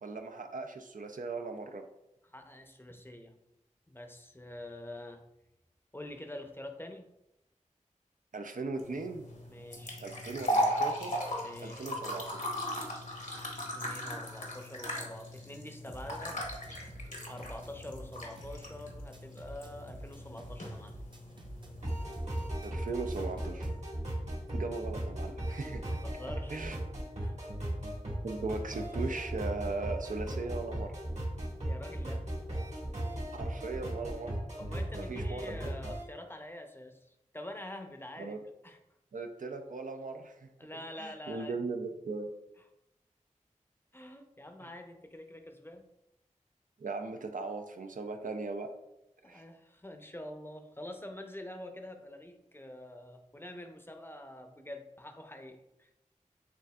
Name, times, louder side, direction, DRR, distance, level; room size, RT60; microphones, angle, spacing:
voice 1, 0.0-1.9 8.3-9.3 10.0-11.2 11.6-12.4 22.6-23.7 24.5-26.0 26.5-26.8 28.2-30.9 33.3-34.3 34.9-35.5 38.2-38.4 39.1-40.5 41.0-42.3 44.6-44.7 46.8-48.7 49.3-49.5, right 3 dB, 85° right, 5 dB, 0.4 m, -38 dB
voice 2, 2.2-3.4 3.9-5.2 5.9-7.1 9.5-10.1 11.4-11.9 13.3-16.4 17.0-21.0 26.0-26.6 27.2-27.5 31.6-32.3 34.6-38.8 40.6-41.6 43.9-45.9 49.2-55.9, left 1 dB, 15° left, 5 dB, 0.6 m, -46 dB
sound 1, 8.8-22.2, equal, 70° left, 1.0 m, -37 dB
sound 2, 15.9-23.9, right 1 dB, 35° right, 0.6 m, -49 dB
sound 3, 21.8-36.0, right 1 dB, 60° right, 1.4 m, -37 dB
6.8 x 2.5 x 2.3 m, 0.84 s
wide cardioid pair, 45°, 13 cm